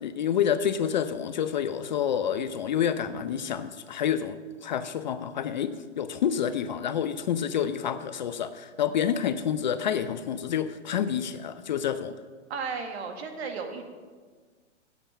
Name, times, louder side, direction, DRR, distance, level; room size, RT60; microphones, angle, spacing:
voice 1, 0.0-12.1, left 8 dB, 40° left, 11 dB, 0.4 m, -28 dB
voice 2, 12.5-13.8, right 5 dB, 55° right, 5 dB, 1.8 m, -34 dB
8.4 x 8.1 x 7.1 m, 1.5 s
hypercardioid pair, 145°, 37 cm